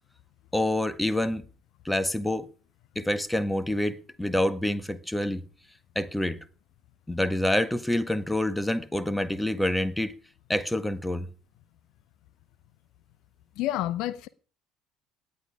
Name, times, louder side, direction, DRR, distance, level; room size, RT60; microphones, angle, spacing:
voice 1, 0.5-1.4 1.8-2.5 2.9-5.4 5.9-6.4 7.1-10.2 10.5-11.3, left 1 dB, 5° left, 1.7 m, -27 dB
voice 2, 13.6-14.3, left 14 dB, 60° left, 0.8 m, -29 dB
18.0 x 11.0 x 4.9 m
figure-of-eight pair, 55°, 0 cm